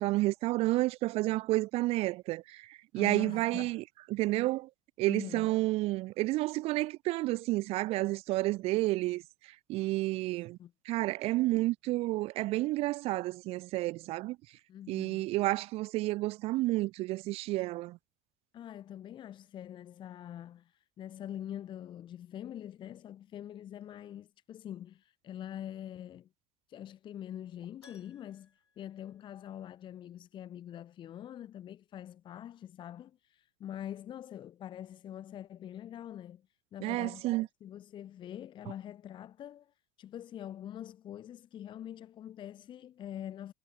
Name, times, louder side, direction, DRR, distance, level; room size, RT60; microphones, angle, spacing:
voice 1, 0.0-3.8 4.1-4.7 5.0-9.2 9.7-10.6 10.9-14.4 14.9-18.0 36.8-37.5, right 19 dB, 45° right, 0.8 m, -30 dB
voice 2, 2.9-3.8 5.1-5.5 10.6-10.7 14.7-15.3 18.5-26.3 26.7-36.5 36.7-37.3 37.6-43.5, left 11 dB, 35° left, 1.0 m, -44 dB
Keyboard (musical), 27.8-29.9 30.1-30.2 32.9-33.0 33.3-33.4, left 5 dB, 80° left, 3.9 m, -64 dB
figure-of-eight pair, 65°, 14 cm